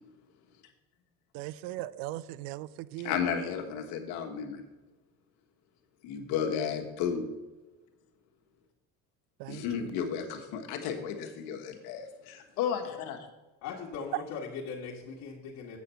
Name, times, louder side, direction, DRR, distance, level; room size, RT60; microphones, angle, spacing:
voice 1, 1.3-3.1 9.4-9.9, right 15 dB, 70° right, 19 dB, 0.5 m, -39 dB
voice 2, 3.0-4.6 6.0-7.3 9.5-13.2, left 7 dB, 80° left, 2 dB, 1.5 m, -33 dB
voice 3, 13.6-15.8, left 5 dB, 65° left, -6 dB, 1.6 m, -39 dB
8.3 x 5.8 x 6.8 m, 1.1 s
cardioid pair, 140°, 36 cm